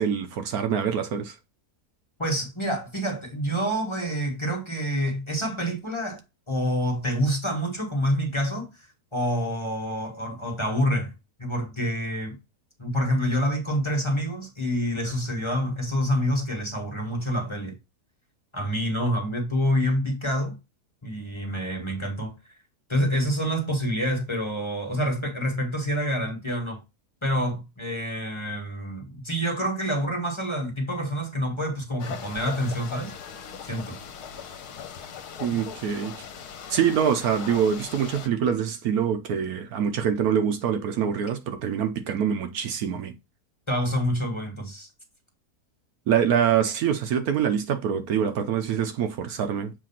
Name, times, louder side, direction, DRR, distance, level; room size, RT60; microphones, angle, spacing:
voice 1, 0.0-1.4 35.4-36.3 36.7-43.1 46.1-49.7, right 8 dB, 75° right, 1.1 m, -25 dB
voice 2, 2.2-6.2 6.5-8.9 9.1-11.1 11.4-12.4 12.8-17.7 18.5-20.6 21.0-22.3 22.9-26.8 27.2-33.1 33.6-34.0 43.7-44.9, equal, 20° left, 1.4 m, -27 dB
sound 1, 32.0-38.3, left 7 dB, 75° left, 1.3 m, -39 dB
7.5 x 2.5 x 5.6 m
omnidirectional pair, 1.7 m